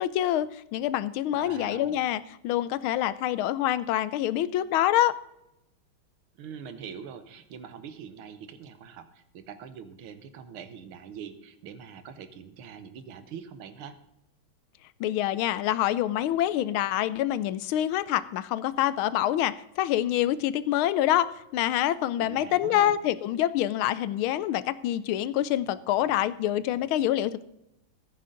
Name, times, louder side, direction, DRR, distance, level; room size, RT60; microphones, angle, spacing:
voice 1, 0.0-5.1 15.0-27.5, left 12 dB, 85° left, 17 dB, 1.4 m, -26 dB
voice 2, 1.3-2.0 6.4-14.0 22.2-23.0, right 7 dB, 90° right, 10 dB, 1.8 m, -43 dB
14.5 x 9.5 x 3.8 m, 0.86 s
omnidirectional pair, 2.3 m